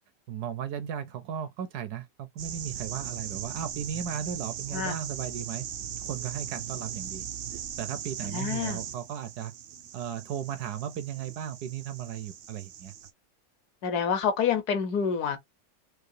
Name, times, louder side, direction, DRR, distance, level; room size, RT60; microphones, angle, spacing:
voice 1, 0.3-5.6 6.0-7.2 7.8-9.5 9.9-12.9, right 9 dB, 70° right, 1.0 m, -36 dB
sound 1, 2.4-13.1, right 9 dB, 90° right, 0.6 m, -39 dB
voice 2, 8.2-8.8 13.8-15.4, left 7 dB, 65° left, 1.2 m, -28 dB
4.7 x 2.3 x 2.6 m
omnidirectional pair, 1.9 m